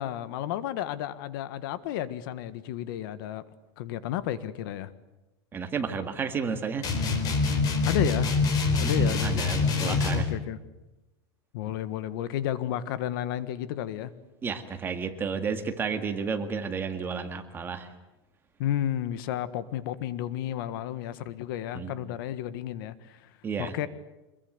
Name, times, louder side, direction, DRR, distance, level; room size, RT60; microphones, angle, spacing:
voice 1, 0.0-3.4 3.8-4.9 7.8-8.3 8.8-10.6 11.5-14.1 18.6-23.3 23.6-23.9, left 11 dB, 55° left, 14 dB, 1.6 m, -32 dB
voice 2, 5.5-6.9 9.0-10.3 14.4-17.9 21.7-21.9 23.4-23.7, right 5 dB, 15° right, 7 dB, 1.9 m, -32 dB
sound 1, 6.8-10.3, left 4 dB, 30° left, 4.3 m, -25 dB
26.0 x 22.0 x 8.1 m, 1.0 s
supercardioid pair, 165°, 14 cm